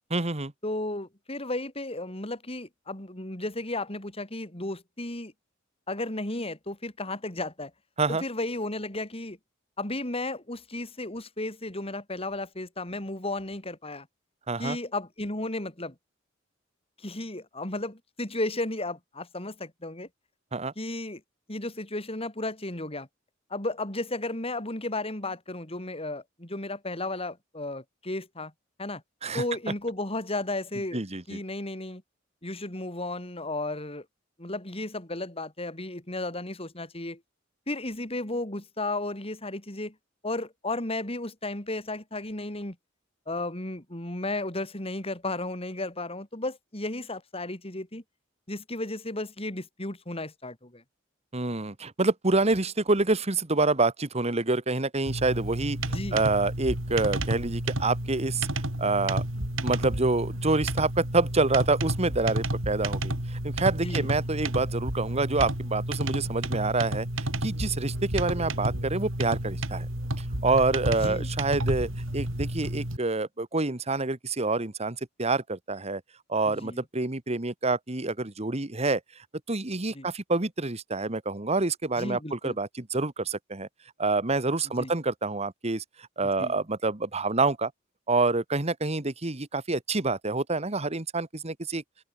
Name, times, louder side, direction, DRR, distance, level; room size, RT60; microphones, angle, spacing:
voice 1, 0.1-0.5 8.0-8.2 14.5-14.8 20.5-20.7 29.2-29.4 30.9-31.4 51.3-58.5 58.8-59.2 59.6-67.1 67.4-69.9 70.2-76.0 76.3-79.0 79.5-83.7 84.0-85.8 86.2-87.7 88.1-91.8, right 3 dB, 35° right, 1.6 m, -27 dB
voice 2, 0.6-5.3 5.9-7.7 8.1-9.4 9.8-14.1 14.6-15.9 17.0-20.1 20.8-21.2 21.5-23.1 23.5-28.5 28.8-29.0 29.3-31.0 31.3-32.0 32.4-34.0 34.4-37.2 37.7-39.9 40.2-42.8 43.3-48.0 48.5-50.8 55.9-56.2 63.8-64.1 70.9-71.3 76.5-76.8 79.9-80.1 82.0-82.6 84.8-84.9 86.4-86.5, left 2 dB, 30° left, 4.5 m, -34 dB
sound 1, 55.1-73.0, right 1 dB, 90° right, 5.0 m, -31 dB
open air
head